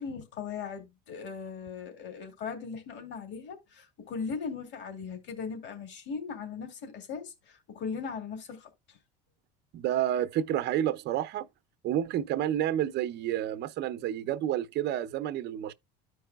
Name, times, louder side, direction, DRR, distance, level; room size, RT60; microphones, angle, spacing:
voice 1, 0.0-9.0, left 5 dB, 55° left, 2.3 m, -38 dB
voice 2, 9.7-11.5 11.8-15.7, right 11 dB, 55° right, 0.6 m, -29 dB
13.5 x 4.7 x 2.3 m
supercardioid pair, 90°, 21 cm